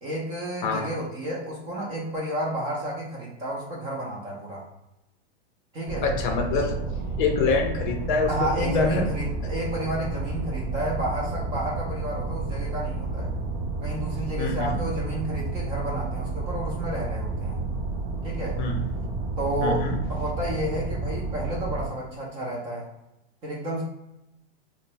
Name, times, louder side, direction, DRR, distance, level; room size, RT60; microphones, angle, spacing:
voice 1, 0.0-4.6 5.7-6.0 8.3-13.3 13.8-17.6 18.2-18.6 19.4-22.9 23.4-23.8, right 1 dB, 20° right, -4 dB, 0.4 m, -31 dB
sound 1, 5.9-21.9, right 3 dB, 50° right, 0.8 m, -31 dB
voice 2, 6.0-6.8 7.2-9.0 14.4-14.8 18.6-18.9 19.6-20.0, left 4 dB, 50° left, 4 dB, 0.5 m, -26 dB
2.5 x 2.0 x 3.0 m, 0.88 s
hypercardioid pair, 145°, 33 cm